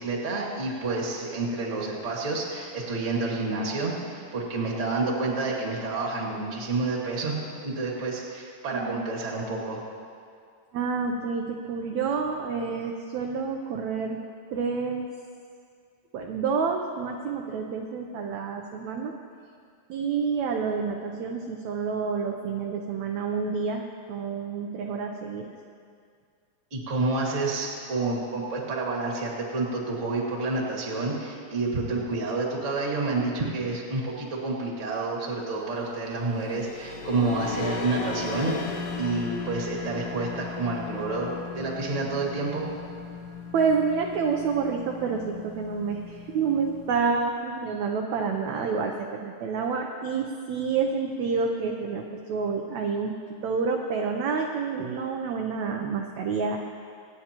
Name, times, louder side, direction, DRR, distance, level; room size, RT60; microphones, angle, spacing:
voice 1, 0.0-9.8 26.7-42.6, right 3 dB, 30° right, -3 dB, 1.7 m, -29 dB
voice 2, 8.7-9.0 10.7-14.2 14.5-15.1 16.1-19.2 19.9-23.8 24.1-25.5 43.5-53.1 53.4-56.6, right 5 dB, 75° right, 2 dB, 1.7 m, -28 dB
sound 1, 36.2-46.9, left 5 dB, 70° left, 1.6 m, -37 dB
25.0 x 9.4 x 2.9 m, 2.2 s
omnidirectional pair, 4.0 m